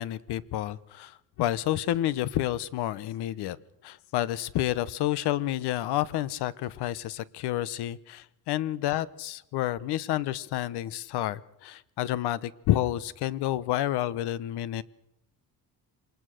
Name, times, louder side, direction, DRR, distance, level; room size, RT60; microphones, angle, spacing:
voice 1, 0.0-3.6 3.8-14.8, left 13 dB, 80° left, 19 dB, 1.0 m, -29 dB
25.5 x 20.5 x 6.5 m, 0.78 s
cardioid pair, 170°, 39 cm